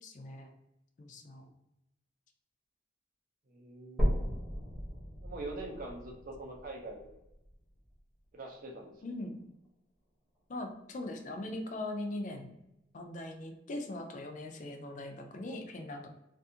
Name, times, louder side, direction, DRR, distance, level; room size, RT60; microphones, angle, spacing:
voice 1, 0.0-0.5 1.0-1.5 9.0-9.4 10.5-12.5 12.9-16.1, left 1 dB, 40° left, 4 dB, 0.4 m, -40 dB
voice 2, 3.5-4.3 5.2-7.1 8.3-8.9, right 2 dB, 45° right, 1 dB, 0.6 m, -43 dB
sound 1, 4.0-8.0 8.5-8.6 9.2-9.3 9.6-9.7 10.6-10.7, equal, 5° right, 0.8 m, -35 dB
2.5 x 2.4 x 2.7 m, 0.88 s
head